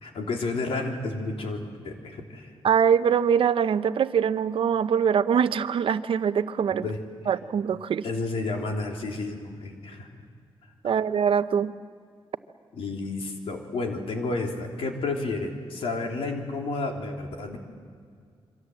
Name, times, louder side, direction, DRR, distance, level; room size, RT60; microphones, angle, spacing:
voice 1, 0.0-2.5 6.8-7.0 8.0-10.1 10.8-10.9 12.8-17.6, left 3 dB, 85° left, 2 dB, 3.4 m, -31 dB
voice 2, 2.6-6.9 7.3-8.0 10.8-11.7, right 7 dB, 65° right, 12 dB, 0.8 m, -23 dB
27.0 x 24.5 x 7.9 m, 2.1 s
wide cardioid pair, 120°, 10 cm